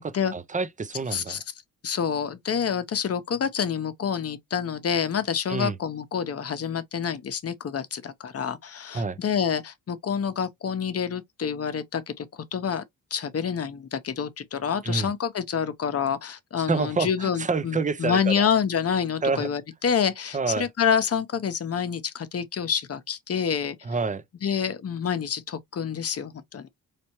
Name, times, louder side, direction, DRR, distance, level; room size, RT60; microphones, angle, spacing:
voice 1, 0.0-1.4 5.5-5.8 8.9-9.2 14.8-15.1 16.7-18.5 19.2-19.5 20.3-20.7 23.8-24.2, right 4 dB, 20° right, 0.5 m, -28 dB
voice 2, 1.1-1.4 1.8-12.8 13.1-23.8 24.4-26.7, left 7 dB, 45° left, 0.8 m, -27 dB
4.2 x 3.3 x 3.0 m
cardioid pair, 110°, 35 cm